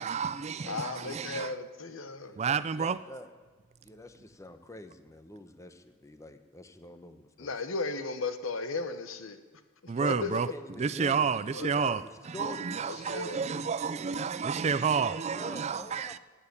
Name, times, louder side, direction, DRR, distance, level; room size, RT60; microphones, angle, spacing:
voice 1, 0.0-1.5 2.4-3.0 9.9-10.5 10.8-16.2, right 6 dB, 30° right, 0.4 m, -30 dB
voice 2, 0.7-2.3 7.4-9.4 10.0-10.4 11.5-12.0 13.1-13.4, left 3 dB, 75° left, 1.1 m, -35 dB
voice 3, 2.2-3.3 3.8-7.5 10.0-11.3 11.8-12.7 15.0-16.2, left 1 dB, 15° left, 0.9 m, -46 dB
15.5 x 9.0 x 9.6 m
head